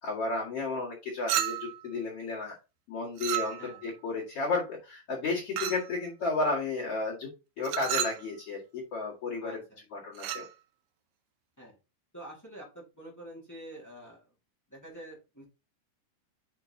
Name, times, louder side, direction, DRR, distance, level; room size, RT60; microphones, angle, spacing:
voice 1, 0.0-2.5 2.9-7.3 7.6-9.6 9.9-10.5, left 3 dB, 45° left, -3 dB, 2.7 m, -33 dB
Chink clink, 1.3-1.9 3.2-3.9 5.6-5.9 7.6-8.3 10.2-10.5, right 12 dB, 90° right, 1.6 m, -32 dB
voice 2, 9.4-9.8 11.6-11.8 12.1-14.3 14.7-15.4, right 1 dB, 20° left, -2 dB, 0.5 m, -47 dB
10.5 x 3.8 x 2.8 m, 0.29 s
omnidirectional pair, 4.1 m